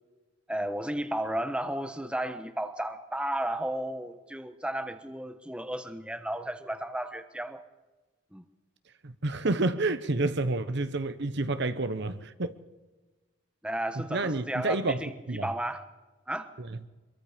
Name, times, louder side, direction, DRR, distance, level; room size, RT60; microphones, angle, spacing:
voice 1, 0.5-7.6 8.3-8.4 13.6-15.8 16.3-16.5, right 1 dB, 5° right, 1.2 m, -33 dB
voice 2, 9.0-12.5 14.0-15.5 16.6-16.8, right 2 dB, 55° right, 1.0 m, -29 dB
25.5 x 22.5 x 5.2 m
head